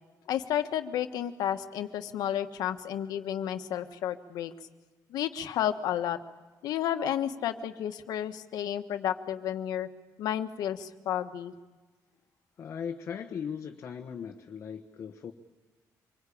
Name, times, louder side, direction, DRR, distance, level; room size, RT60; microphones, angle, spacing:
voice 1, 0.3-4.5 5.1-6.2 6.6-9.9 10.2-11.5, left 10 dB, 75° left, 7 dB, 1.4 m, -31 dB
voice 2, 12.6-15.3, left 7 dB, 40° left, 2 dB, 1.3 m, -38 dB
26.0 x 22.5 x 8.6 m, 1.2 s
cardioid pair, 170°, 7 cm